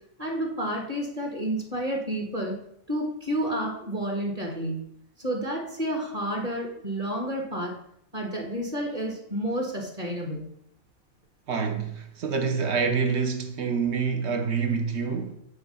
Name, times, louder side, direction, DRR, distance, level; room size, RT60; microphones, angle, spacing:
voice 1, 0.2-2.5 2.9-4.8 5.2-7.7 8.1-10.5, right 1 dB, 30° right, 1.6 m, -30 dB
voice 2, 11.5-15.3, right 5 dB, 60° right, 1.0 m, -27 dB
7.9 x 3.3 x 5.5 m
omnidirectional pair, 1.4 m